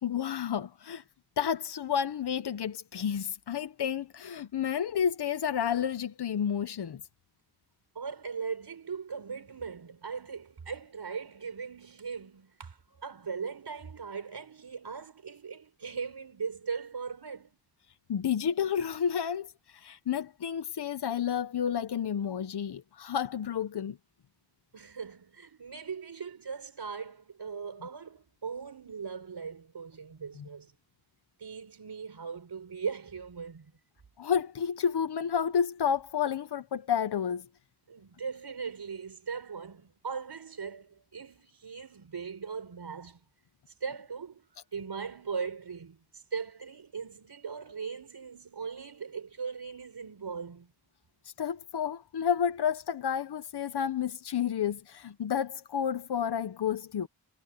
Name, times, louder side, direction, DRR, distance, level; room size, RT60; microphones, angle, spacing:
voice 1, 0.0-1.0 1.4-7.0 18.1-24.0 34.2-37.4 51.2-57.1, left 8 dB, 85° left, 0.9 m, -30 dB
voice 2, 8.0-17.5 24.7-30.7 31.4-33.7 37.9-43.2 43.8-44.5 44.7-50.7, right 5 dB, 80° right, 5.2 m, -39 dB
wide cardioid pair, 85°, 39 cm